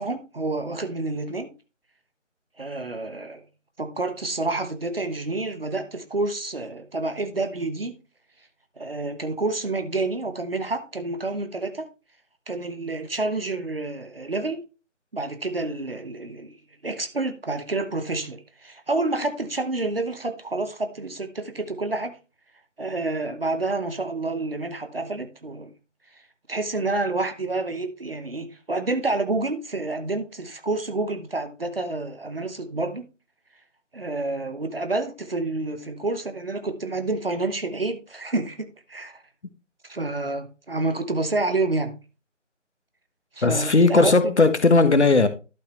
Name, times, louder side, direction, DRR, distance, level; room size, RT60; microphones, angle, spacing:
voice 1, 0.0-1.5 2.6-3.4 3.8-7.9 8.8-11.9 12.5-14.6 15.1-16.6 16.8-22.2 22.8-25.7 26.5-33.0 33.9-39.2 39.8-42.0 43.4-44.3, right 2 dB, 50° right, 1.0 m, -28 dB
voice 2, 43.4-45.3, left 3 dB, 60° left, 1.2 m, -17 dB
11.5 x 5.6 x 3.2 m
figure-of-eight pair, 165°, 38 cm